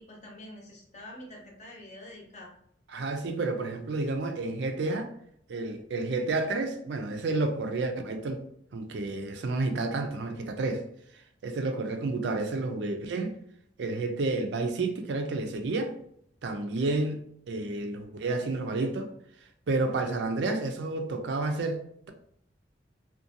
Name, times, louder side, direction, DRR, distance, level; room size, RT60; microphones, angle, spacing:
voice 1, 0.0-2.5, left 1 dB, 40° left, 0.7 m, -46 dB
voice 2, 2.9-5.1 5.5-8.4 8.7-10.8 11.4-13.3 13.8-15.9 16.4-17.2 17.5-19.1 19.7-21.8, right 2 dB, 70° right, 0.4 m, -30 dB
2.5 x 2.2 x 2.7 m
head